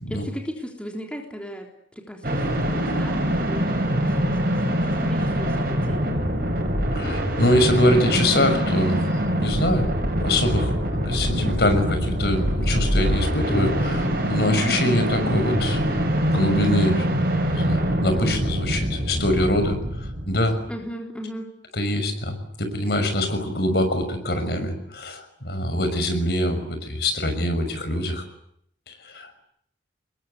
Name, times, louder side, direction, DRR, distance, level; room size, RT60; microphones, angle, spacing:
voice 1, 0.1-6.1 20.7-21.5, equal, 5° left, 2 dB, 3.5 m, -37 dB
sound 1, 2.2-20.7, equal, 50° right, 7.4 m, -24 dB
voice 2, 6.9-9.9 10.2-10.8 11.0-20.6 21.7-28.2 28.9-29.4, left 1 dB, 60° left, 7 dB, 6.2 m, -24 dB
27.0 x 21.5 x 9.6 m, 0.71 s
head